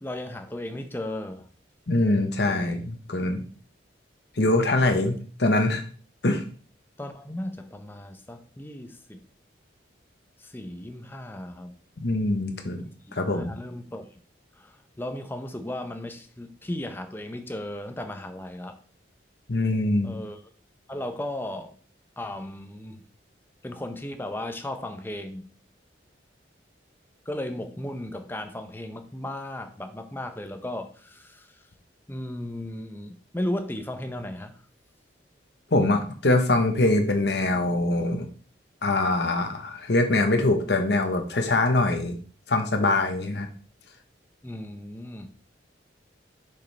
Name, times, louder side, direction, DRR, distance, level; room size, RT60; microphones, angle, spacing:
voice 1, 0.0-1.4 2.4-2.7 7.0-9.2 10.4-11.7 13.3-14.1 14.6-18.8 20.0-20.4 20.9-21.7 22.2-23.0 23.6-25.5 27.3-31.5 32.1-34.6 44.4-45.3, left 1 dB, 10° left, 7 dB, 0.6 m, -35 dB
voice 2, 1.9-3.4 4.4-5.8 6.2-6.4 12.0-13.5 19.5-20.2 35.7-38.3 38.8-42.2 42.5-43.5, left 2 dB, 60° left, 5 dB, 1.0 m, -23 dB
6.7 x 5.2 x 3.3 m, 0.42 s
head